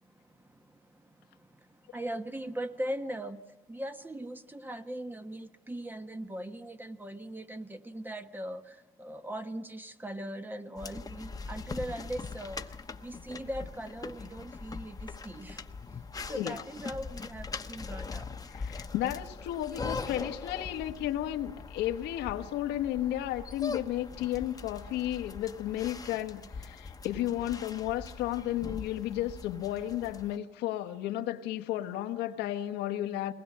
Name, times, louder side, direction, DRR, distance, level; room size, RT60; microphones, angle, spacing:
voice 1, 1.9-3.4 3.7-8.6 9.0-12.6 13.0-15.6 16.3-18.2, right 1 dB, 10° right, 1.2 m, -39 dB
sound 1, 10.8-30.4, left 4 dB, 20° left, 1.1 m, -42 dB
voice 2, 16.3-16.6 18.5-33.3, left 13 dB, 90° left, 1.3 m, -33 dB
22.0 x 19.5 x 8.6 m
cardioid pair, 110°, 17 cm